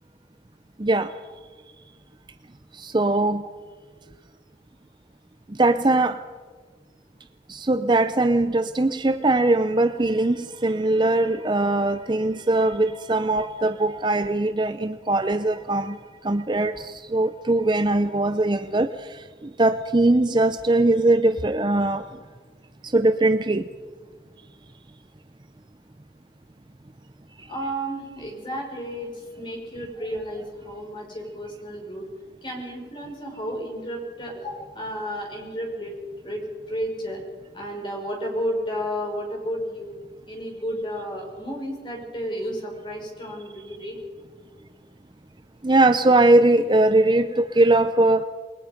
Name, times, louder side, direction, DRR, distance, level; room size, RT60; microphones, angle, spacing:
voice 1, 0.8-1.1 2.7-3.4 5.5-6.2 7.5-16.0 16.2-22.1 22.8-23.7 45.6-48.2, right 2 dB, 25° right, 10 dB, 0.6 m, -21 dB
voice 2, 27.5-32.1 32.4-36.0 36.2-37.2 37.5-39.9 40.3-44.0, equal, 25° left, 0 dB, 5.4 m, -32 dB
29.0 x 21.0 x 5.2 m, 1.5 s
head